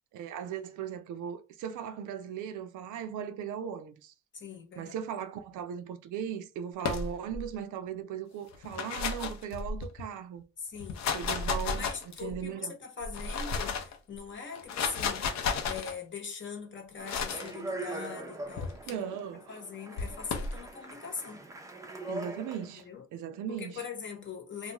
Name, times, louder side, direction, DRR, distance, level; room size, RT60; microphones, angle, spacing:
voice 1, 0.1-4.1 4.8-10.4 11.1-12.7 18.9-19.6 22.1-22.9 23.1-23.8, right 8 dB, 80° right, 0.5 m, -38 dB
voice 2, 4.3-4.9 10.6-11.0 11.7-19.0 19.5-21.5 22.7-23.0 23.5-24.7, left 5 dB, 40° left, 0.9 m, -41 dB
sound 1, 6.8-7.5 8.5-10.0 10.8-12.4 13.0-14.0 14.5-15.9 17.1-17.5 18.6-18.9 20.0-20.6, left 5 dB, 65° left, 0.6 m, -33 dB
Speech, 17.0-22.8, right 2 dB, 10° right, 0.4 m, -42 dB
2.3 x 2.2 x 2.9 m
cardioid pair, 90°, 30 cm